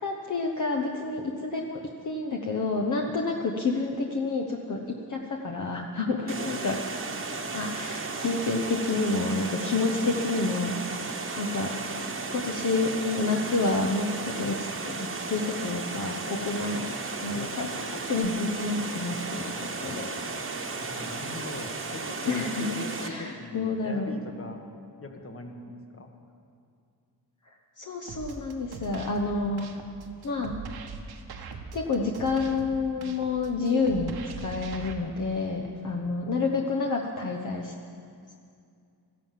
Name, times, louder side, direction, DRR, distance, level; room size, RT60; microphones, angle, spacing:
voice 1, 0.0-6.8 7.5-11.0 11.3-11.7 12.3-14.9 15.3-16.9 17.2-20.1 22.3-24.2 27.8-29.7 30.2-30.5 31.7-37.7, left 3 dB, 50° left, 1 dB, 1.1 m, -29 dB
Water, 6.3-23.1, right 3 dB, 35° right, 1.2 m, -35 dB
voice 2, 16.7-17.0 20.7-24.6 25.0-26.1 35.9-36.4, left 3 dB, 35° left, 4 dB, 1.6 m, -41 dB
sound 1, 28.1-34.9, right 5 dB, 80° right, 1.2 m, -41 dB
14.0 x 11.5 x 7.5 m, 2.4 s
wide cardioid pair, 110°, 38 cm